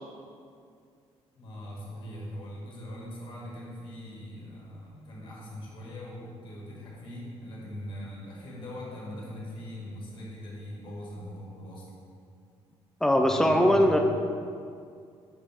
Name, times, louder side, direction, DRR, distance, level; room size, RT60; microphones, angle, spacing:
voice 1, 1.4-11.9 13.3-13.9, equal, 45° left, -4 dB, 1.4 m, -41 dB
voice 2, 13.0-14.0, equal, 5° left, 3 dB, 0.3 m, -21 dB
5.5 x 5.0 x 3.5 m, 2.3 s
cardioid pair, 175°, 11 cm